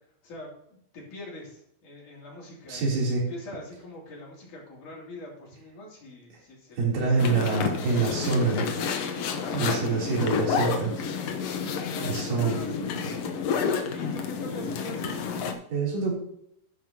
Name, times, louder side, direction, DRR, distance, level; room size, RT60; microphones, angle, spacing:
voice 1, 0.9-7.7 9.4-10.9 11.8-12.9 13.8-15.2, left 2 dB, 55° left, -3 dB, 4.4 m, -44 dB
voice 2, 2.7-3.3 6.8-8.7 9.5-10.9 12.0-12.6 15.7-16.1, right 4 dB, 90° right, -3 dB, 5.3 m, -25 dB
sound 1, 7.2-15.5, left 6 dB, 80° left, 1.4 m, -30 dB
12.0 x 9.2 x 2.9 m, 0.72 s
omnidirectional pair, 4.3 m